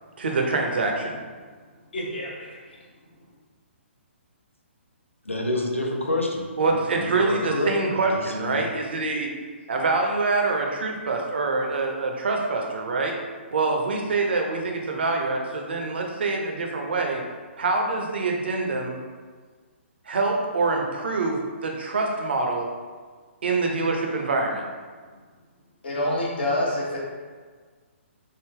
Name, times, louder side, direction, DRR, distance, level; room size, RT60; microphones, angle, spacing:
voice 1, 0.2-1.2 6.6-9.3 9.7-13.2 13.5-17.2 17.6-19.0 20.1-22.7 23.4-24.6, right 3 dB, 55° right, 2 dB, 0.5 m, -25 dB
voice 2, 1.9-2.6 25.8-27.0, left 1 dB, 55° left, -4 dB, 0.8 m, -27 dB
voice 3, 5.3-8.6, left 2 dB, 85° left, 0 dB, 0.5 m, -28 dB
3.6 x 2.0 x 3.5 m, 1.5 s
figure-of-eight pair, 125°, 7 cm